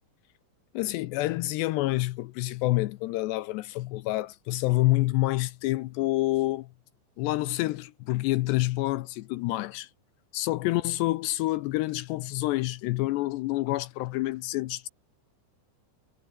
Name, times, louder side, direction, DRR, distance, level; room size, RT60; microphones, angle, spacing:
voice 1, 0.7-6.7 7.2-9.9 10.3-14.9, left 18 dB, 80° left, 2.7 m, -28 dB
omnidirectional pair, 5.3 m